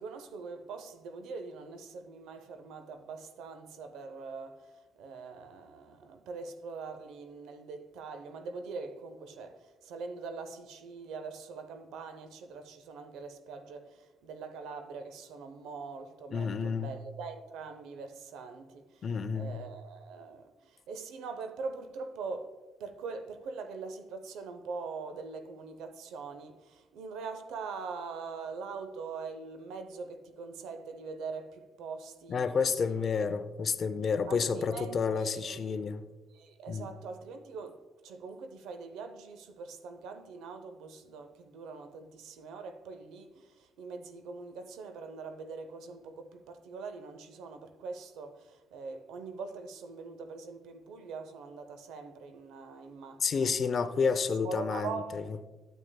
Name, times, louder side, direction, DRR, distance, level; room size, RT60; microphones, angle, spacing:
voice 1, 0.0-19.1 19.3-32.9 34.3-35.6 36.3-53.5 54.4-55.3, right 4 dB, 90° right, 0.7 m, -43 dB
voice 2, 16.3-16.9 19.0-19.6 32.3-36.0 36.7-36.9 53.2-55.2, left 5 dB, 50° left, 0.5 m, -30 dB
9.0 x 8.2 x 2.2 m
cardioid pair, 90°, 0 cm